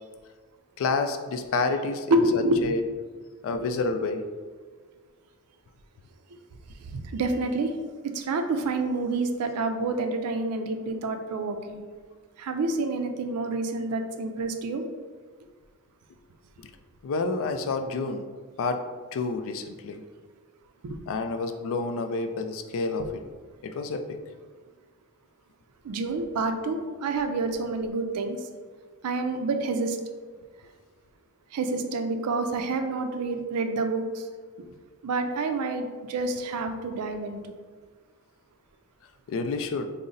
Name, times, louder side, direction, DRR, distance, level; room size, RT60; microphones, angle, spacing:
voice 1, 0.8-2.8 3.4-4.2 17.0-18.2 18.6-18.8 19.1-20.0 21.1-23.1 23.6-24.2 39.3-39.9, left 3 dB, 60° left, 7 dB, 0.3 m, -29 dB
voice 2, 2.1-2.8 3.6-3.7 6.8-7.7 8.0-11.8 12.4-14.8 20.8-21.0 25.8-28.4 29.0-30.0 31.5-34.3 35.0-37.4, right 2 dB, 80° right, 6 dB, 0.4 m, -28 dB
3.9 x 2.0 x 3.8 m, 1.5 s
head